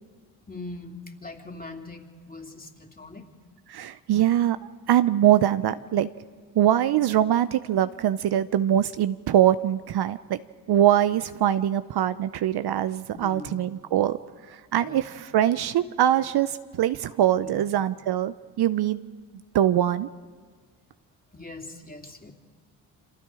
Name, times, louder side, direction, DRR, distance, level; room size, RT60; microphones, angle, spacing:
voice 1, 0.5-3.3 13.1-13.7 14.8-15.1 17.4-17.6 21.3-22.3, left 3 dB, 20° left, 2 dB, 3.3 m, -41 dB
voice 2, 3.7-4.6 4.9-6.1 6.6-10.4 10.7-14.2 14.5-19.0 19.5-20.1, right 11 dB, 55° right, 12 dB, 0.8 m, -23 dB
27.5 x 25.5 x 4.9 m, 1.6 s
hypercardioid pair, 50°, 46 cm